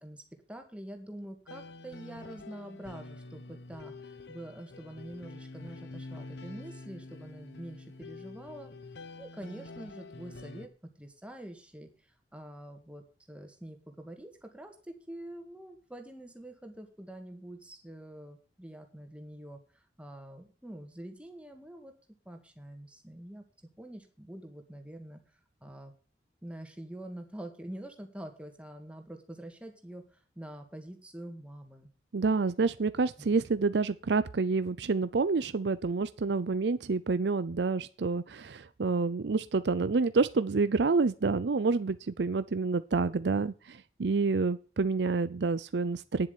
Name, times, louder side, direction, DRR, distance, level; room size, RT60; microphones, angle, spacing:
voice 1, 0.5-8.7 9.2-11.9 12.3-21.9 22.3-23.4 23.8-25.2 25.6-25.9 26.4-31.9 33.2-33.5, right 1 dB, 5° right, 5 dB, 2.0 m, -46 dB
sound 1, 1.5-10.7, left 3 dB, 75° left, 1.0 m, -47 dB
voice 2, 32.1-46.3, right 4 dB, 80° right, 14 dB, 0.5 m, -28 dB
10.0 x 7.6 x 8.2 m, 0.38 s
head